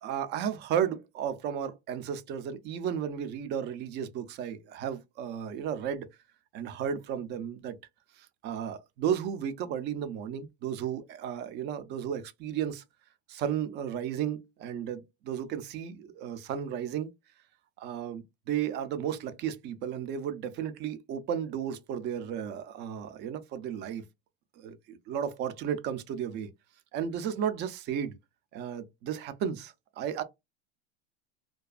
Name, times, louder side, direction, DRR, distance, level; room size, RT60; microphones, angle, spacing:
voice 1, 0.0-6.1 6.5-7.8 8.2-12.8 13.3-17.1 17.8-24.0 24.6-26.5 26.9-28.1 28.5-30.2, right 8 dB, 35° right, 0.4 m, -34 dB
2.4 x 2.2 x 2.3 m
supercardioid pair, 135°, 31 cm